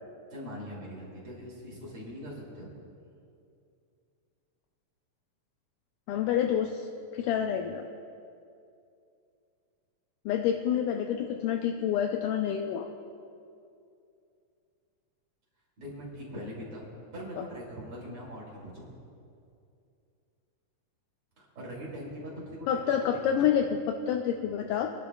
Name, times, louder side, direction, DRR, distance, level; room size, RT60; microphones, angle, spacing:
voice 1, 0.3-2.7 15.8-18.9 21.4-23.5, equal, 45° right, -4 dB, 3.1 m, -42 dB
voice 2, 6.1-6.9 7.1-7.8 10.3-12.9 22.7-24.9, left 9 dB, 80° left, 3 dB, 2.1 m, -28 dB
28.0 x 10.5 x 2.3 m, 2.5 s
omnidirectional pair, 3.9 m